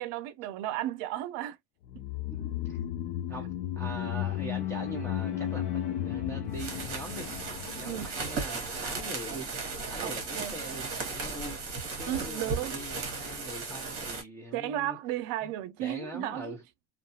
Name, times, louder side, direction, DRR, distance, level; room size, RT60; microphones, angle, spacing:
voice 1, 0.0-1.6 1.9-2.0 7.8-8.1 10.0-10.5 12.1-12.7 14.5-16.6, right 13 dB, 90° right, 0.6 m, -34 dB
sound 1, 1.9-8.3 8.6-8.7, left 11 dB, 85° left, 0.6 m, -34 dB
voice 2, 2.4-2.8 3.3-7.3 7.7-9.5 9.9-11.6 12.0-15.0 15.4-15.5 15.8-16.6, right 1 dB, 5° left, 0.3 m, -42 dB
sound 2, 4.2-8.8, left 8 dB, 50° left, 0.7 m, -48 dB
sound 3, 6.5-14.2, right 4 dB, 25° right, 1.0 m, -36 dB
2.3 x 2.3 x 2.7 m
cardioid pair, 170°, 50 cm